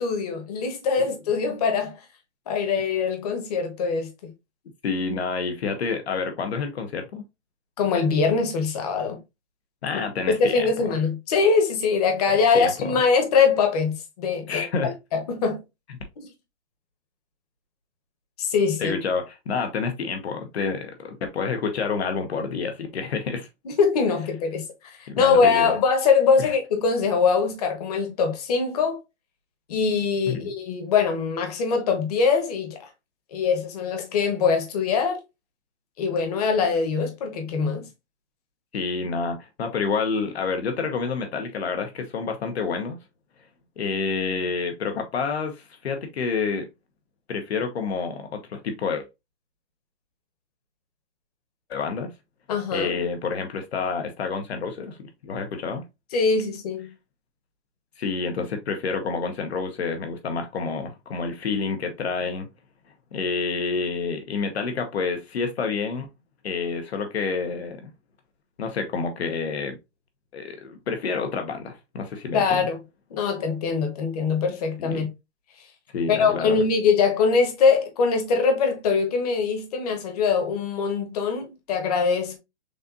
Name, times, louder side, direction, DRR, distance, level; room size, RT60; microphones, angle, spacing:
voice 1, 0.0-1.9 2.5-4.3 7.8-9.2 10.3-15.6 18.4-19.0 23.6-29.0 29.7-32.8 33.3-35.2 36.0-37.9 52.5-53.0 56.1-56.9 72.3-72.8 73.1-75.1 76.1-82.4, left 5 dB, 35° left, 1.2 m, -23 dB
voice 2, 4.8-7.2 9.8-11.0 12.3-13.0 14.5-14.9 18.8-23.5 25.1-25.7 26.4-26.5 30.3-30.5 38.7-43.0 43.8-46.7 47.3-49.1 51.7-52.1 52.7-55.8 58.0-62.5 63.1-66.1 66.4-67.9 68.6-69.8 70.3-72.7 74.8-75.1 75.9-76.6, left 5 dB, 65° left, 1.1 m, -28 dB
6.6 x 2.6 x 2.6 m
hypercardioid pair, 170°, 35 cm